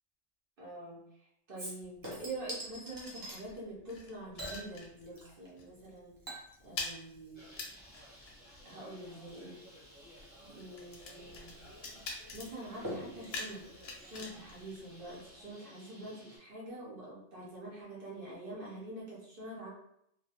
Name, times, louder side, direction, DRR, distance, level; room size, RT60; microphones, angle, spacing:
voice 1, 0.6-1.0 1.5-6.2 6.6-7.5 8.6-9.6 10.4-11.6 12.3-13.7 14.0-19.7, right 1 dB, 50° right, -5 dB, 0.8 m, -45 dB
Chink clink / Liquid, 1.6-3.4 4.4-5.5 5.8-14.8 15.2-15.3, equal, 30° right, 0.3 m, -47 dB
sound 1, 2.0-5.3 5.6-5.8 6.1-15.5, left 3 dB, 65° left, 0.7 m, -47 dB
Bird, 7.3-16.4, equal, 15° right, 0.8 m, -55 dB
2.2 x 2.2 x 2.7 m, 0.75 s
omnidirectional pair, 1.3 m